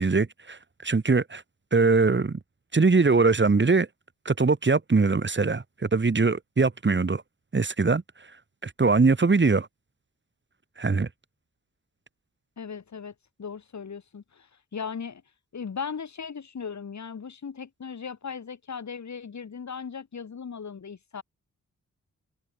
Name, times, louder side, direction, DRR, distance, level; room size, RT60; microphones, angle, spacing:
voice 1, 0.0-1.4 1.7-2.4 2.7-3.9 4.3-7.2 7.5-8.0 8.6-9.7 10.8-11.1, right 4 dB, 35° right, 4.0 m, -22 dB
voice 2, 12.6-13.1 13.4-15.2 15.5-21.2, left 6 dB, 60° left, 7.9 m, -37 dB
cardioid pair, 80°, 31 cm